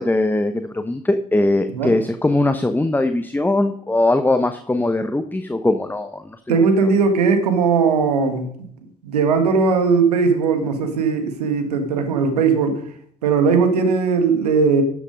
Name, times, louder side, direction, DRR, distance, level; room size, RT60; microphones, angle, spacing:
voice 1, 0.0-6.9, left 2 dB, 10° left, 8 dB, 0.9 m, -21 dB
voice 2, 6.5-8.5 9.0-12.8 13.2-14.8, right 5 dB, 80° right, 7 dB, 1.6 m, -18 dB
13.0 x 7.1 x 5.3 m, 0.65 s
figure-of-eight pair, 50°, 20 cm